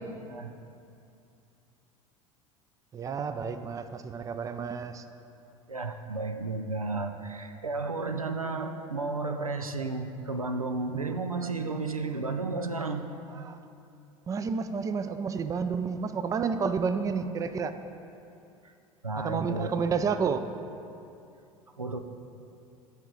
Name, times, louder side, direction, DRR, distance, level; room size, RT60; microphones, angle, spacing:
voice 1, 2.9-5.0 13.3-13.6 14.3-17.8 19.2-20.5, right 5 dB, 20° right, 10 dB, 0.4 m, -30 dB
voice 2, 5.7-13.1 19.0-19.7 21.8-22.0, right 3 dB, 90° right, 6 dB, 0.4 m, -32 dB
13.5 x 4.9 x 3.8 m, 2.6 s
figure-of-eight pair, 70°, 18 cm